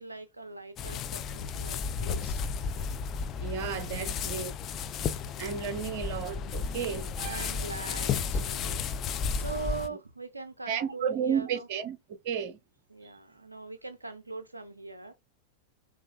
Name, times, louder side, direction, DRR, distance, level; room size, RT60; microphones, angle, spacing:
voice 1, 0.0-2.4 3.8-4.1 7.2-8.9 9.3-11.7 12.9-15.1, right 4 dB, 80° right, 0.3 m, -41 dB
sound 1, 0.8-9.9, left 6 dB, 30° left, 0.4 m, -33 dB
voice 2, 3.4-4.5 5.4-7.5 10.7-12.0 12.2-12.6, right 7 dB, 45° right, 0.7 m, -32 dB
5.2 x 2.3 x 2.4 m
figure-of-eight pair, 90°, 0 cm